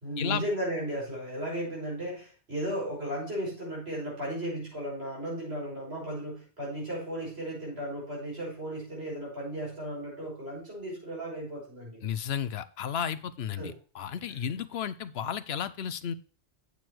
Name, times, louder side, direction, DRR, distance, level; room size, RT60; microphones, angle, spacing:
voice 1, 0.0-12.0 13.6-13.7 14.3-14.4, right 1 dB, 65° right, -3 dB, 6.1 m, -35 dB
voice 2, 12.0-16.1, left 8 dB, 70° left, 14 dB, 0.9 m, -33 dB
8.5 x 7.8 x 4.5 m, 0.38 s
omnidirectional pair, 1.1 m